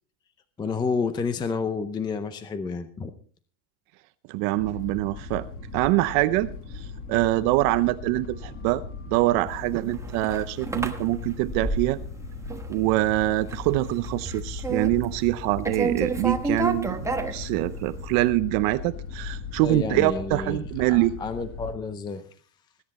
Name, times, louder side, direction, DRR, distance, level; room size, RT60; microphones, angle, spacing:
voice 1, 0.6-3.1 19.6-22.2, left 4 dB, 10° left, 11 dB, 0.6 m, -30 dB
voice 2, 4.3-5.5 5.7-6.5 6.7-8.8 9.1-12.0 12.7-21.1, right 17 dB, 45° right, 13 dB, 0.7 m, -24 dB
sound 1, 4.6-21.8, left 4 dB, 30° left, 2.0 m, -38 dB
sound 2, 9.7-12.2 12.5-13.0 13.4-13.7 14.0-15.4 15.6-17.9, right 3 dB, 5° right, 1.1 m, -30 dB
20.0 x 10.0 x 4.2 m, 0.42 s
supercardioid pair, 145°, 48 cm